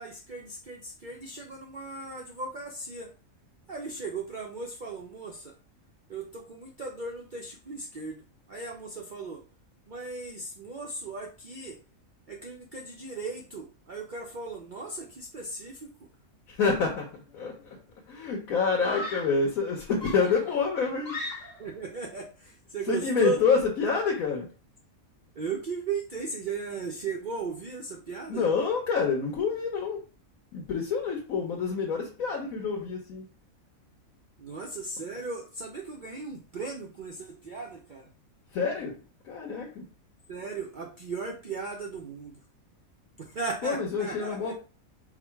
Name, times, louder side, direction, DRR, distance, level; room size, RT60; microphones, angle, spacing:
voice 1, 0.0-3.1 3.7-5.5 6.1-8.2 8.5-9.4 9.9-11.8 12.3-15.9 21.6-23.4 25.4-28.5 34.4-38.1 40.3-42.4 43.2-44.5, right 4 dB, 50° right, 0 dB, 0.6 m, -36 dB
voice 2, 16.5-17.8 18.1-21.1 22.9-24.5 28.3-30.0 30.5-33.2 38.5-38.9 39.2-39.8 43.6-44.5, left 5 dB, 85° left, -1 dB, 1.3 m, -27 dB
Screaming, 17.3-17.7 18.8-19.5 20.0-21.7, left 1 dB, 35° left, 1.2 m, -38 dB
4.6 x 2.2 x 4.5 m, 0.35 s
omnidirectional pair, 1.4 m